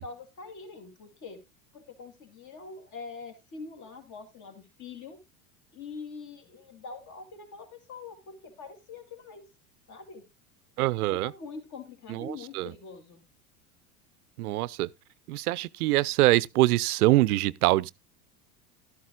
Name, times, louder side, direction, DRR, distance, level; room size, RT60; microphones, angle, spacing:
voice 1, 0.0-1.4 1.7-5.2 5.7-9.4 9.9-10.2 11.1-13.2, left 4 dB, 40° left, 2.6 m, -44 dB
voice 2, 10.8-11.3 12.1-12.7 14.4-14.9 15.3-17.9, right 18 dB, 80° right, 0.5 m, -24 dB
12.5 x 11.5 x 2.3 m
hypercardioid pair, 95°, 45 cm